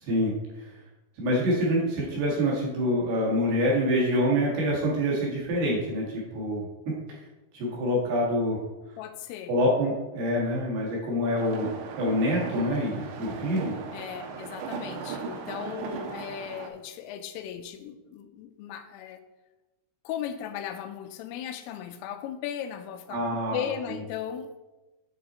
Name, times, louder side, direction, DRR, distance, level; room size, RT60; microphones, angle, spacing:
voice 1, 0.0-0.7 1.2-6.7 7.5-8.6 9.5-11.7 12.0-13.7 23.1-23.7, equal, 60° right, -4 dB, 3.4 m, -26 dB
voice 2, 9.0-9.6 13.9-19.2 20.0-24.5, left 9 dB, 85° left, 9 dB, 3.3 m, -37 dB
sound 1, 11.4-16.7, right 5 dB, 80° right, 2.7 m, -37 dB
8.0 x 6.1 x 4.2 m, 1.1 s
omnidirectional pair, 5.7 m